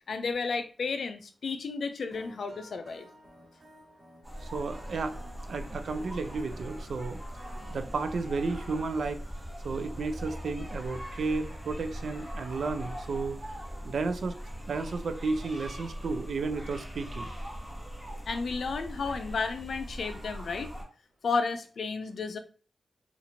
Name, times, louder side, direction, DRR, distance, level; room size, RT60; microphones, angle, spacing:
voice 1, 0.1-3.1 18.3-20.7 21.2-22.4, left 4 dB, 80° left, 8 dB, 0.4 m, -32 dB
sound 1, 2.1-8.1, equal, 55° right, 1.2 m, -53 dB
sound 2, 4.2-20.8, equal, 5° right, 1.0 m, -40 dB
voice 2, 4.4-5.1 5.5-7.2 7.5-9.2 9.6-13.6 13.9-14.3 14.7-17.3, right 4 dB, 80° right, 8 dB, 0.4 m, -33 dB
2.8 x 2.4 x 2.8 m, 0.37 s
wide cardioid pair, 125°, 0 cm